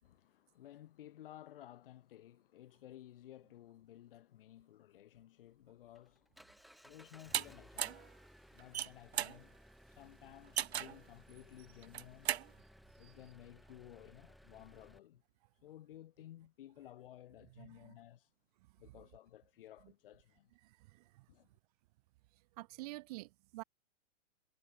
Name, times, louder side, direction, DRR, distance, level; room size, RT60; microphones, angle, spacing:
voice 1, 0.0-6.4 6.8-8.2 8.5-9.6 9.9-12.3 13.0-15.2 15.6-18.3 18.8-20.5 21.3-21.5, left 13 dB, 50° left, 5.4 m, -56 dB
Engine, 5.5-15.0, equal, ahead, 2.9 m, -61 dB
sound 1, 7.3-7.4 7.8-8.1 8.6-9.4 10.6-11.0 11.8-12.5, right 10 dB, 65° right, 2.7 m, -36 dB
voice 2, 17.6-18.0 20.6-21.3 22.6-23.6, right 21 dB, 35° right, 2.1 m, -49 dB
hypercardioid pair, 165°, 34 cm